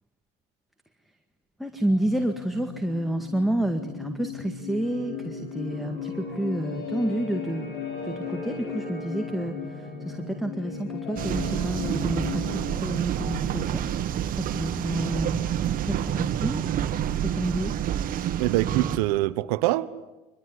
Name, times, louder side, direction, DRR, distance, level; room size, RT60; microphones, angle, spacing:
voice 1, 1.6-7.7 8.0-13.8 14.3-15.4 15.8-16.6 17.2-17.7, right 1 dB, ahead, 2.0 m, -29 dB
sound 1, 1.9-13.3, left 5 dB, 55° left, 7.2 m, -36 dB
sound 2, 11.2-19.0, right 10 dB, 50° right, 1.9 m, -28 dB
voice 2, 18.4-19.9, right 17 dB, 85° right, 1.1 m, -24 dB
24.0 x 22.0 x 10.0 m
supercardioid pair, 110°, 19 cm